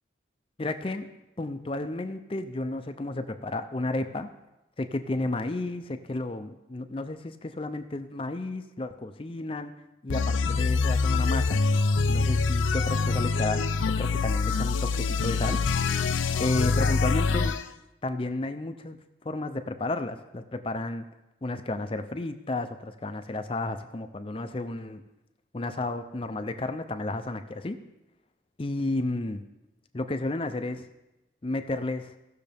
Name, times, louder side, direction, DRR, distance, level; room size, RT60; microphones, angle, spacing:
voice 1, 0.6-1.1 1.4-4.3 4.8-9.7 10.0-11.6 12.1-15.6 16.4-17.6 18.0-19.0 19.2-21.1 21.4-25.0 25.5-27.8 28.6-29.4 29.9-30.9 31.4-32.1, left 2 dB, 30° left, 9 dB, 0.5 m, -32 dB
sound 1, 10.1-17.6, left 4 dB, 85° left, 0.5 m, -25 dB
17.0 x 6.5 x 3.5 m, 0.95 s
head